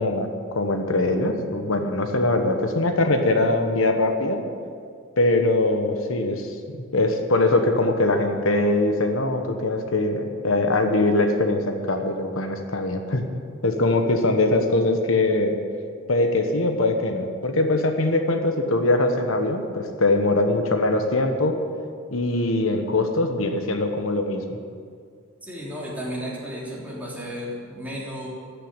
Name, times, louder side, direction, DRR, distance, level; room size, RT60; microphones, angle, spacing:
voice 1, 0.0-4.4 5.2-13.3 13.6-15.6 16.1-21.6 22.1-24.6, left 2 dB, 90° left, 5 dB, 1.2 m, -22 dB
voice 2, 25.4-28.3, equal, 10° right, -6 dB, 3.3 m, -33 dB
13.5 x 6.9 x 8.7 m, 2.1 s
head